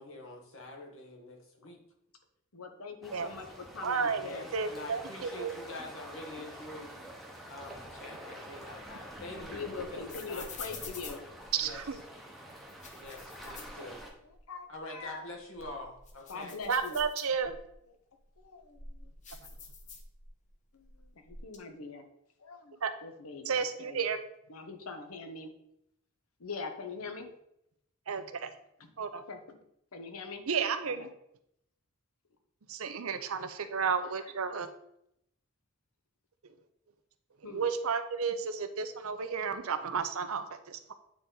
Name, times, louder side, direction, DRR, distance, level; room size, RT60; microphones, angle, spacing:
voice 1, 0.0-1.8 4.2-6.9 7.5-10.0 10.3-10.5 11.6-11.8 12.9-14.0 14.7-16.6, left 2 dB, 70° left, 1 dB, 1.5 m, -46 dB
voice 2, 2.5-4.5 9.3-11.2 13.2-13.9 14.2-15.3 16.3-17.0 18.4-19.1 20.7-22.0 22.4-24.1 24.5-25.5 26.4-27.3 28.8-28.9 29.3-29.6 29.9-30.4 30.9-31.0 33.6-33.7 34.1-34.2 37.4-37.6, left 4 dB, 85° left, 6 dB, 1.0 m, -43 dB
sound 1, 3.0-14.1, right 1 dB, ahead, 0.9 m, -47 dB
voice 3, 3.8-4.3 4.5-5.5 11.5-12.0 16.7-17.5 22.8-22.9 23.5-24.2 28.1-28.5 29.0-29.2 30.5-31.1 32.7-34.7 37.4-40.9, right 6 dB, 80° right, 9 dB, 0.6 m, -32 dB
sound 2, 8.6-12.0 12.6-14.4 14.8-14.9 15.4-17.8 18.3-20.5 20.8-21.6, left 4 dB, 35° left, 0.8 m, -48 dB
8.6 x 4.1 x 3.9 m, 0.77 s
head